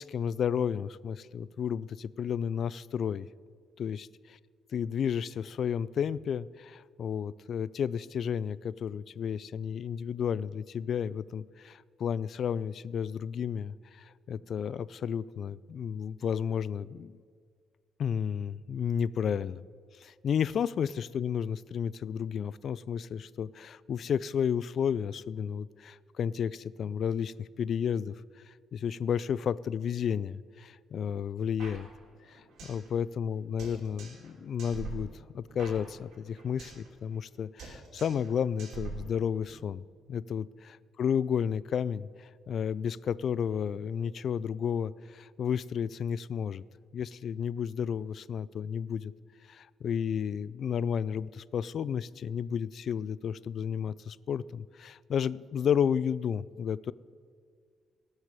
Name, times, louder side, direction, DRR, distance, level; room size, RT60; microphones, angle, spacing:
voice 1, 0.0-3.3 3.8-4.1 4.7-17.1 18.0-19.6 20.0-28.2 28.5-31.9 32.3-35.1 35.3-46.6 46.9-49.1 49.5-56.9, left 8 dB, 55° left, 20 dB, 0.3 m, -32 dB
sound 1, 31.6-32.9 33.1-33.2 33.6-34.3 34.6-36.9 37.1-37.3 37.6-38.3 38.6-39.6, right 4 dB, 75° right, 3.2 m, -44 dB
18.0 x 6.5 x 6.8 m, 2.1 s
cardioid pair, 135°, 0 cm